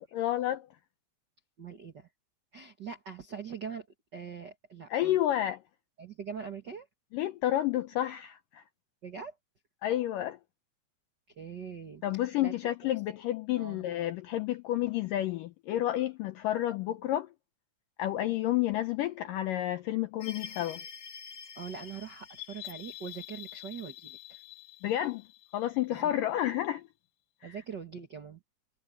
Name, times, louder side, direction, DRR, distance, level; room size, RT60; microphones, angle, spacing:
voice 1, 0.1-0.7 4.9-5.6 7.1-8.6 9.8-10.4 12.0-17.3 18.0-20.8 24.8-25.2 25.5-26.8 27.4-27.6, left 13 dB, 80° left, 1.9 m, -30 dB
voice 2, 1.6-2.1 2.5-3.9 4.1-5.2 6.0-6.9 9.0-9.3 11.4-12.0 12.4-12.6 13.6-13.9 21.5-24.4 25.9-26.1 27.4-28.4, right 6 dB, 80° right, 0.9 m, -42 dB
sound 1, 20.2-26.5, left 9 dB, 50° left, 3.1 m, -46 dB
omnidirectional pair, 4.8 m